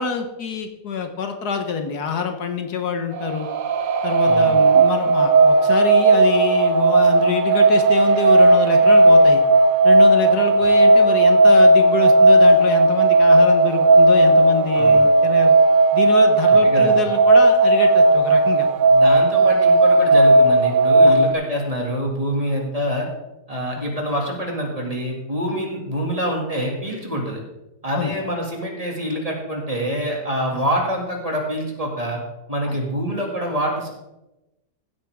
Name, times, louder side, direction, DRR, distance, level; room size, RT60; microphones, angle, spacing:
voice 1, 0.0-3.5 4.0-9.4 9.8-15.5 15.9-18.7 21.1-21.2 25.5-25.6 27.9-28.1 30.5-30.6 32.7-32.8, left 6 dB, 70° left, 6 dB, 1.5 m, -26 dB
sound 1, 3.2-21.3, right 2 dB, 85° right, 0.4 m, -14 dB
voice 2, 4.3-4.6 14.7-15.0 16.5-17.1 18.9-23.1 23.5-27.4 27.8-32.2 32.5-33.9, equal, 20° right, -1 dB, 2.2 m, -26 dB
15.5 x 8.7 x 3.5 m, 0.97 s
omnidirectional pair, 1.8 m